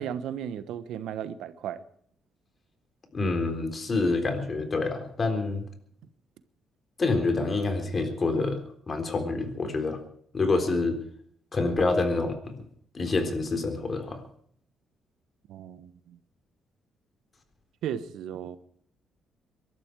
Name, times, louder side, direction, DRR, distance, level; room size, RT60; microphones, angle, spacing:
voice 1, 0.0-1.8 15.5-16.2 17.8-18.6, right 9 dB, 85° right, 1.2 m, -35 dB
voice 2, 3.1-5.6 7.0-8.6 8.9-10.0 10.3-11.0 11.5-12.6 12.9-14.2, left 3 dB, 35° left, 3.9 m, -27 dB
23.0 x 12.5 x 4.7 m
cardioid pair, 90°, 0 cm